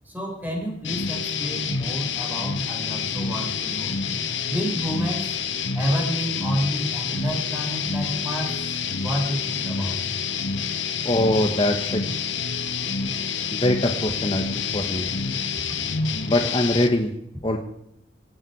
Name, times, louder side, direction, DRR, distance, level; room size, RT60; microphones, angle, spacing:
voice 1, 0.1-4.0 4.5-5.4 5.7-10.1 15.7-15.8, equal, 10° right, 0 dB, 5.2 m, -29 dB
sound 1, 0.8-16.9, left 6 dB, 90° left, 1.5 m, -28 dB
sound 2, 0.9-17.0, left 1 dB, 70° left, 7.1 m, -47 dB
voice 2, 11.0-12.1 13.5-15.1 16.2-17.1 17.4-17.6, left 1 dB, 30° left, 3 dB, 1.3 m, -23 dB
26.5 x 9.0 x 4.8 m, 0.75 s
head